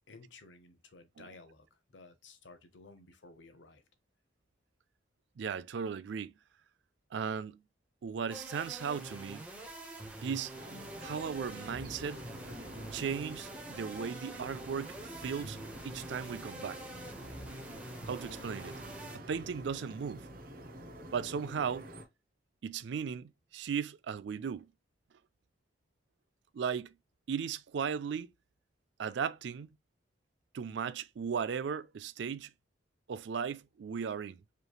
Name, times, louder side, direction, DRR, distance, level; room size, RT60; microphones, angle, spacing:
voice 1, 0.1-3.8, left 3 dB, 80° left, 0.9 m, -55 dB
voice 2, 5.4-6.3 7.1-7.6 8.0-9.4 10.2-10.5 11.0-12.2 12.9-16.8 18.1-18.8 19.1-20.3 21.1-21.9 22.6-24.7 26.5-26.9 27.3-28.3 29.0-29.7 30.5-32.5 33.1-34.4, right 6 dB, 70° right, 0.4 m, -36 dB
sound 1, 8.3-19.2, right 1 dB, 5° right, 0.9 m, -46 dB
sound 2, 10.5-22.0, equal, 50° right, 0.9 m, -48 dB
5.0 x 3.1 x 2.3 m
head